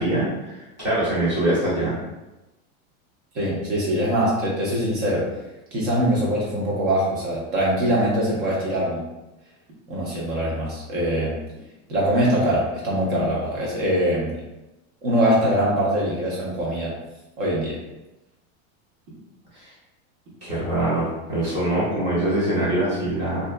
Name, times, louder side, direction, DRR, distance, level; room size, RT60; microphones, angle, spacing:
voice 1, 0.0-2.0 19.5-19.7 20.4-23.5, right 1 dB, 25° right, -8 dB, 1.1 m, -23 dB
voice 2, 3.3-5.3 5.7-9.0 9.9-11.3 11.9-14.3 15.0-16.9 17.4-17.8, equal, 60° right, -5 dB, 1.2 m, -23 dB
2.7 x 2.4 x 2.2 m, 1.0 s
supercardioid pair, 160°, 42 cm